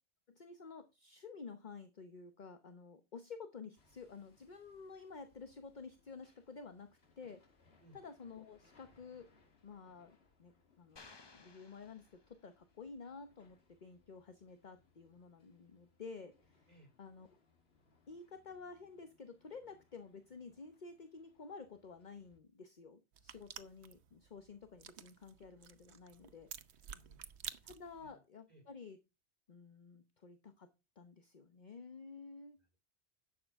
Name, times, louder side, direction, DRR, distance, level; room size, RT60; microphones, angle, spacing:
voice 1, 0.3-6.9 7.2-7.4 7.9-9.3 9.6-16.7 17.0-17.3 18.1-26.5 27.6-29.0 29.5-30.7 31.0-32.6, left 4 dB, 45° left, 8 dB, 1.1 m, -52 dB
Hammer, 3.8-22.4, left 4 dB, 65° left, 2.0 m, -72 dB
sound 1, 11.0-12.7, left 3 dB, 25° left, 0.8 m, -59 dB
sound 2, 23.1-28.1, right 8 dB, 75° right, 1.1 m, -51 dB
voice 2, 26.9-27.2 28.0-28.2 28.5-28.7 32.6-32.8, right 1 dB, 40° right, 1 dB, 5.1 m, -63 dB
11.5 x 7.8 x 3.6 m, 0.26 s
omnidirectional pair, 1.1 m